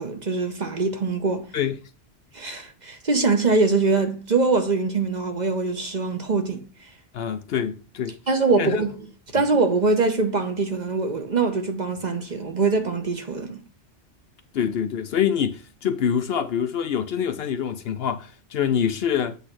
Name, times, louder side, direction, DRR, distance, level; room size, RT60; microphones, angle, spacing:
voice 1, 0.0-1.5 2.3-6.6 8.3-9.0 9.3-13.6, right 3 dB, 40° right, 1.0 m, -23 dB
voice 2, 7.1-8.2 8.6-8.9 9.4-9.5 14.5-19.4, left 8 dB, 65° left, 0.8 m, -25 dB
8.0 x 3.3 x 6.0 m
omnidirectional pair, 1.2 m